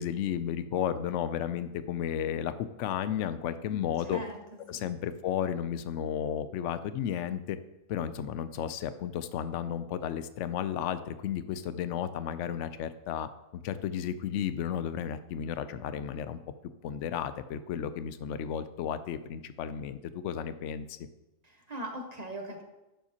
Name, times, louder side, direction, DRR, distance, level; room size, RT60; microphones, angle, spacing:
voice 1, 0.0-4.2 4.7-7.6 7.9-16.4 16.8-21.0, left 9 dB, 70° left, 12 dB, 0.9 m, -33 dB
voice 2, 4.0-4.9 21.4-22.6, right 1 dB, 30° right, 2 dB, 1.2 m, -41 dB
10.5 x 7.1 x 2.9 m, 0.95 s
omnidirectional pair, 1.4 m